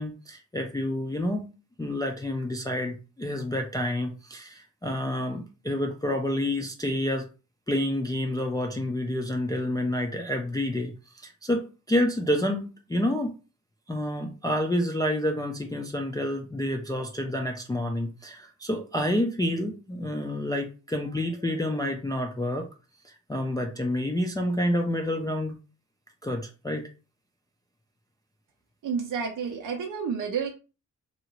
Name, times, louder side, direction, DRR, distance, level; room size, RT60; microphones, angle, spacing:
voice 1, 0.0-1.5 1.8-7.3 7.7-13.3 13.9-22.7 23.0-25.6 26.2-26.9, left 1 dB, 15° left, 1 dB, 0.3 m, -29 dB
voice 2, 28.8-30.5, right 6 dB, 90° right, 1 dB, 0.5 m, -30 dB
2.8 x 2.4 x 2.9 m, 0.33 s
wide cardioid pair, 130°, 32 cm